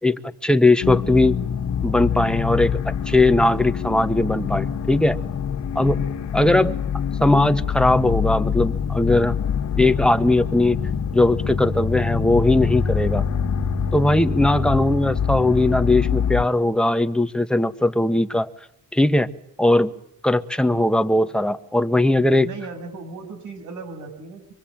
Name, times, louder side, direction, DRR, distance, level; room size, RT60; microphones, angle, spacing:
voice 1, 0.0-1.4 1.8-5.2 5.7-6.0 6.3-6.8 7.2-9.3 9.8-10.8 11.1-13.2 13.9-18.5 18.9-19.3 19.6-19.9 20.2-22.5, left 2 dB, 5° left, 8 dB, 1.6 m, -19 dB
sound 1, 0.8-16.5, left 7 dB, 65° left, 2.0 m, -25 dB
voice 2, 22.4-24.5, right 3 dB, 85° right, 6 dB, 7.8 m, -36 dB
24.5 x 24.5 x 9.1 m, 0.70 s
cardioid pair, 90°, 30 cm